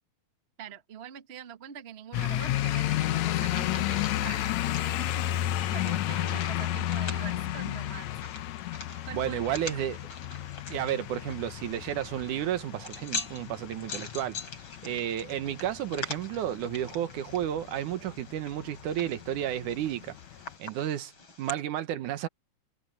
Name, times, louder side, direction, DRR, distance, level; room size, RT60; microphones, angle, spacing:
voice 1, 0.6-4.5 5.0-5.3 5.7-8.2 9.1-9.9, right 9 dB, 70° right, 0.6 m, -44 dB
sound 1, 2.1-20.5, left 13 dB, 70° left, 2.0 m, -33 dB
sound 2, 2.5-21.5, left 4 dB, 40° left, 4.9 m, -44 dB
voice 2, 9.1-10.0 10.7-14.4 14.8-20.2 20.6-21.1 21.4-22.3, right 11 dB, 85° right, 2.7 m, -32 dB
omnidirectional pair, 3.5 m